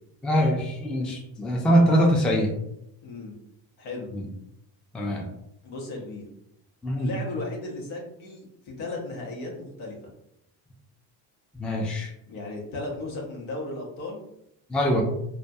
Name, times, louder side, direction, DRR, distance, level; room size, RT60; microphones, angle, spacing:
voice 1, 0.2-2.5 4.1-4.2 4.9-5.3 6.8-7.2 11.6-12.1 14.7-15.0, equal, ahead, 0 dB, 0.3 m, -23 dB
voice 2, 3.0-3.4 3.8-4.1 5.6-6.3 7.0-10.1 12.3-14.2, left 2 dB, 75° left, -2 dB, 0.9 m, -35 dB
2.2 x 2.1 x 2.6 m, 0.80 s
hypercardioid pair, 60°, 49 cm